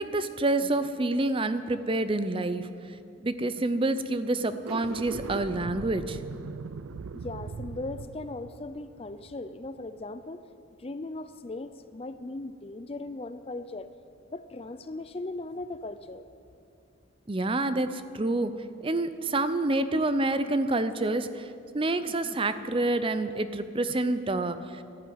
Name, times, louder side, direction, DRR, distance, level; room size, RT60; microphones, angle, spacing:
voice 1, 0.0-2.7 3.2-6.2 17.3-18.5 18.8-21.5 21.7-24.8, right 2 dB, 25° right, 12 dB, 0.6 m, -28 dB
sound 1, 4.5-9.8, right 5 dB, 90° right, 0.4 m, -40 dB
voice 2, 7.1-10.4 10.8-13.9 14.3-16.2, left 2 dB, 30° left, 12 dB, 0.4 m, -38 dB
12.0 x 11.5 x 9.5 m, 2.5 s
head